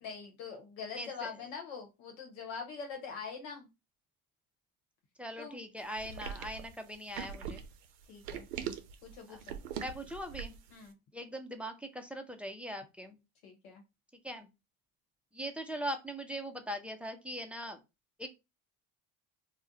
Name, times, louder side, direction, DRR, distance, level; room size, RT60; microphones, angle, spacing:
voice 1, 0.0-3.7 5.4-5.6 8.1-8.5 9.0-9.6 10.7-10.9 13.4-13.8, left 5 dB, 75° left, 2 dB, 1.0 m, -43 dB
voice 2, 1.0-1.3 5.2-7.6 9.3-9.4 9.8-10.5 11.1-13.2 14.2-14.5 15.3-17.8 18.2-18.3, equal, 5° right, 5 dB, 0.5 m, -40 dB
sound 1, 6.0-10.7, right 8 dB, 80° right, 0.6 m, -41 dB
2.4 x 2.1 x 3.8 m, 0.25 s
hypercardioid pair, 70°, 44 cm